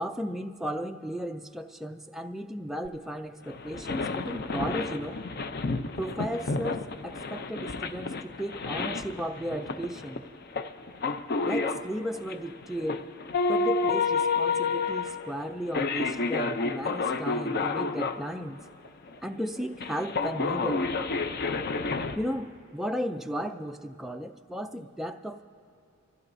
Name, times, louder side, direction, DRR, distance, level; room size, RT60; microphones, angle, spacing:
voice 1, 0.0-5.2 6.0-10.2 11.4-13.0 13.5-18.6 19.2-20.8 22.1-25.4, equal, ahead, 4 dB, 0.3 m, -35 dB
sound 1, 2.9-3.0 3.5-18.2 18.6-22.2, left 4 dB, 45° left, 0.5 m, -30 dB
26.0 x 15.0 x 2.6 m, 2.7 s
head